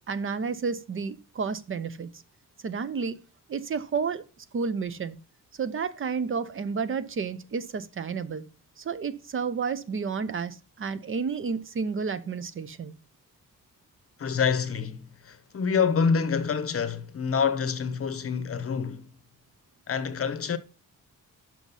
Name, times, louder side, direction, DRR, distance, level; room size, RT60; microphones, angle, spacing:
voice 1, 0.1-2.1 2.6-3.2 3.5-4.2 4.5-5.2 5.6-8.4 8.8-12.9, right 5 dB, 40° right, 0.7 m, -31 dB
voice 2, 14.2-19.1 19.9-20.6, left 6 dB, 45° left, 0.8 m, -27 dB
6.1 x 5.9 x 5.4 m
wide cardioid pair, 145°, 33 cm